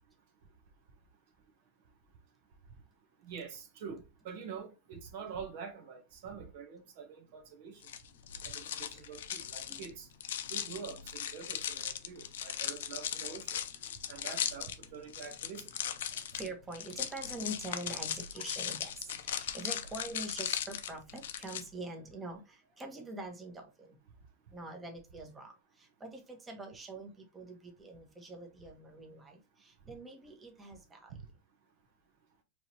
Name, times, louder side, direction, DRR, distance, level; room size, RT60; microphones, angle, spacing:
voice 1, 3.2-7.8 8.4-10.1 10.5-13.5 14.1-15.7, right 6 dB, 60° right, 0.9 m, -46 dB
sound 1, 7.8-21.6, left 10 dB, 75° left, 0.5 m, -38 dB
voice 2, 16.1-24.0 24.5-25.5 25.8-31.1, right 2 dB, 15° right, 1.1 m, -45 dB
4.7 x 3.1 x 2.8 m
hypercardioid pair, 120°, 0 cm